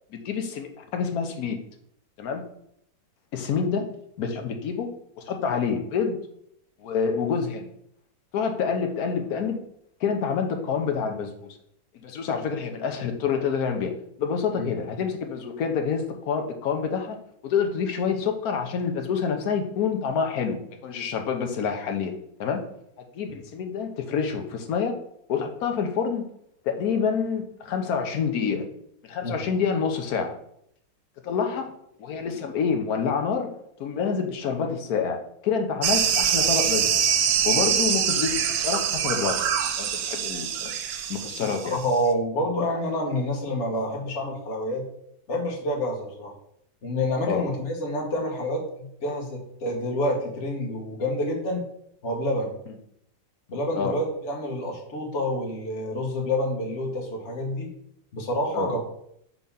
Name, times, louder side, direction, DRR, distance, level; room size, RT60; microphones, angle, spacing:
voice 1, 0.1-1.6 2.2-2.4 3.3-3.9 4.2-4.9 5.2-6.2 6.8-7.7 8.3-9.6 10.0-11.3 12.0-17.2 17.4-22.1 22.4-22.6 23.1-25.0 25.3-26.3 26.6-28.6 29.0-30.3 31.2-31.7 32.0-33.5 33.8-35.2 35.4-37.1 37.4-39.4 39.8-40.7 41.1-41.8 47.3-47.4 53.8-53.9 58.5-58.7, left 6 dB, 60° left, 4 dB, 1.2 m, -27 dB
sound 1, 35.8-42.0, right 8 dB, 75° right, 1.3 m, -24 dB
voice 2, 41.4-44.8 45.3-46.3 46.8-51.6 52.0-52.5 53.5-57.7 58.1-58.8, left 1 dB, 40° left, -1 dB, 1.5 m, -28 dB
4.7 x 3.9 x 5.6 m, 0.71 s
omnidirectional pair, 2.0 m